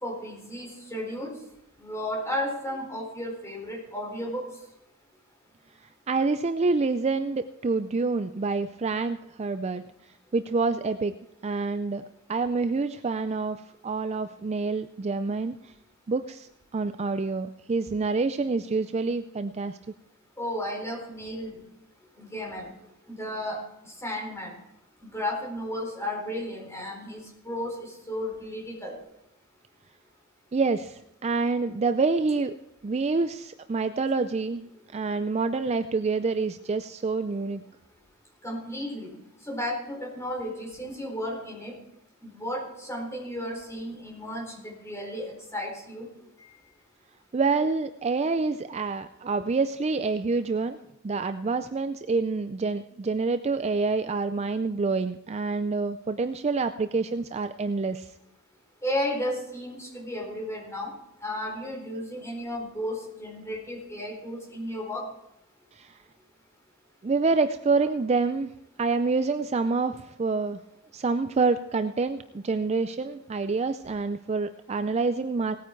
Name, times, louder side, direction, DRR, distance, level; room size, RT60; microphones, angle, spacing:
voice 1, 0.0-1.3 1.8-4.5 20.4-21.6 22.2-22.7 23.1-24.6 25.0-29.0 38.4-39.1 39.4-41.7 42.2-46.1 46.4-46.5 58.8-60.9 61.2-65.0, left 1 dB, 15° left, -2 dB, 4.4 m, -34 dB
voice 2, 6.1-9.8 10.3-11.1 11.4-12.0 12.3-15.6 16.1-19.8 30.5-32.6 32.8-37.6 47.3-50.8 51.0-58.1 65.8-65.9 67.0-68.5 68.8-70.6 70.9-75.6, right 4 dB, 30° right, 10 dB, 0.4 m, -27 dB
18.5 x 9.3 x 4.5 m, 0.83 s
head